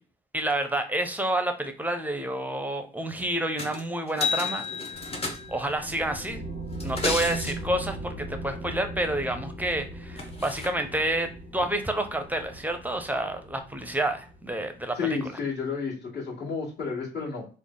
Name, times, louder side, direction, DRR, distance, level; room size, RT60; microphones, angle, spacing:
voice 1, 0.3-4.6 5.5-6.4 6.8-15.2, right 1 dB, 10° right, 7 dB, 0.6 m, -29 dB
sound 1, 3.6-3.8 4.1-5.7 6.7-7.5 9.7-9.8 10.2-10.7 11.6-11.7, left 4 dB, 30° left, 0.8 m, -31 dB
sound 2, 4.9-14.9, right 1 dB, 80° left, 0.9 m, -39 dB
voice 2, 15.0-17.5, left 5 dB, 55° left, -5 dB, 1.6 m, -31 dB
3.3 x 2.1 x 3.7 m, 0.38 s
cardioid pair, 90°, 20 cm